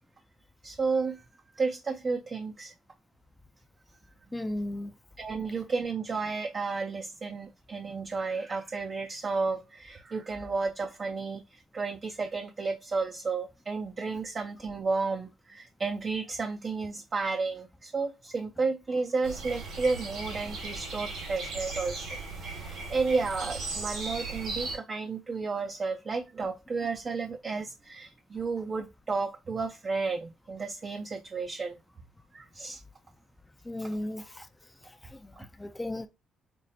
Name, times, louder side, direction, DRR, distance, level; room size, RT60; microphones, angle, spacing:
voice 1, 0.6-1.2 1.6-2.7 5.2-22.1 22.4-31.8 32.3-32.8 35.4-35.5, right 4 dB, 40° right, 0.5 m, -32 dB
voice 2, 4.3-4.9 33.7-34.5 35.0-35.3 35.6-36.1, left 1 dB, 15° left, 0.4 m, -35 dB
sound 1, 19.2-24.8, right 3 dB, 70° right, 2.1 m, -37 dB
5.2 x 2.1 x 2.7 m
cardioid pair, 90°, 0 cm